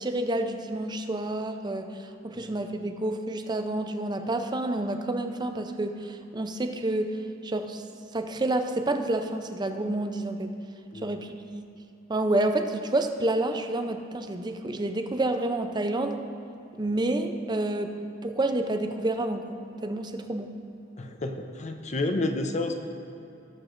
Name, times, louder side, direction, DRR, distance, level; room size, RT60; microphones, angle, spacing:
voice 1, 0.0-2.0 2.2-7.1 7.4-7.8 8.1-10.5 11.0-11.6 12.1-16.2 16.8-17.9 18.2-19.6 19.8-20.5, right 2 dB, 20° right, 7 dB, 0.5 m, -29 dB
voice 2, 21.0-22.7, left 2 dB, 35° left, 5 dB, 0.7 m, -30 dB
18.5 x 6.8 x 2.6 m, 2.8 s
head